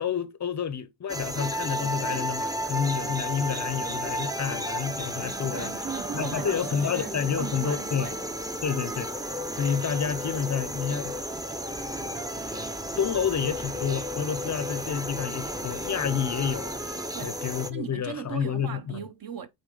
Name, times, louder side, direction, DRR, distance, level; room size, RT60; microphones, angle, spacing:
voice 1, 0.0-5.7 6.1-8.1 8.6-11.2 13.0-19.0, left 7 dB, 40° left, 0.5 m, -29 dB
sound 1, 1.1-17.7, equal, 10° right, 0.6 m, -33 dB
sound 2, 5.2-9.4, right 5 dB, 90° right, 3.1 m, -47 dB
voice 2, 5.5-8.2 17.1-17.4 17.7-19.5, right 7 dB, 45° right, 0.9 m, -38 dB
sound 3, 11.7-16.9, right 1 dB, 25° right, 2.3 m, -48 dB
8.2 x 4.0 x 3.8 m
wide cardioid pair, 145°, 46 cm